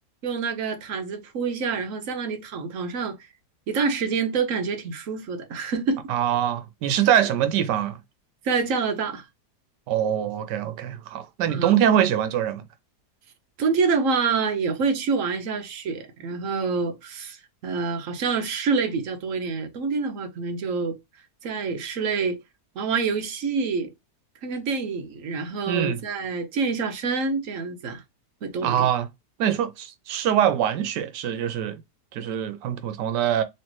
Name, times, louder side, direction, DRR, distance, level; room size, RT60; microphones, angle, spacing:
voice 1, 0.2-3.2 3.7-6.0 8.4-9.2 11.5-11.7 13.6-21.0 21.4-22.4 22.8-23.9 24.4-28.0 28.4-28.9, right 5 dB, 60° right, 1.0 m, -27 dB
voice 2, 6.1-8.0 9.9-12.6 25.7-26.0 28.6-29.1 29.4-31.8 32.1-33.4, right 10 dB, 85° right, 1.3 m, -23 dB
3.2 x 3.1 x 3.0 m
omnidirectional pair, 1.8 m